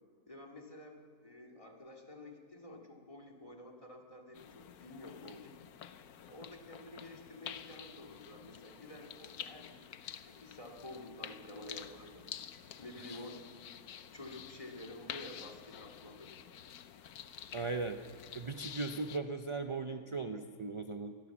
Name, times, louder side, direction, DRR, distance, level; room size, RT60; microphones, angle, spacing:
voice 1, 0.3-5.6 6.3-9.9 10.3-12.3 12.8-13.4 14.1-16.4, left 1 dB, 20° left, 1 dB, 2.4 m, -50 dB
sound 1, 4.3-19.2, left 9 dB, 80° left, 1.3 m, -49 dB
voice 2, 17.5-18.0 18.3-21.2, right 3 dB, 40° right, 7 dB, 0.4 m, -38 dB
25.5 x 21.0 x 7.2 m, 2.2 s
omnidirectional pair, 1.6 m